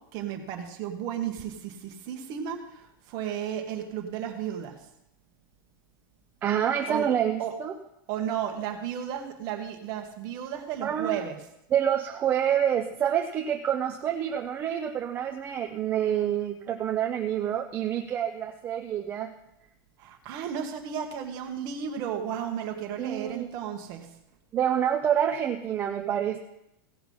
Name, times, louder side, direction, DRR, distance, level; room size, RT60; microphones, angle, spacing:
voice 1, 0.1-4.8 6.8-7.1 7.4-7.5 8.1-11.4 20.0-24.1, right 9 dB, 35° right, 3 dB, 1.7 m, -34 dB
voice 2, 6.4-7.7 10.8-11.2 11.7-19.3 23.0-23.5 24.5-26.4, right 9 dB, 15° right, 4 dB, 0.5 m, -27 dB
16.5 x 5.8 x 5.5 m, 0.84 s
supercardioid pair, 165°, 12 cm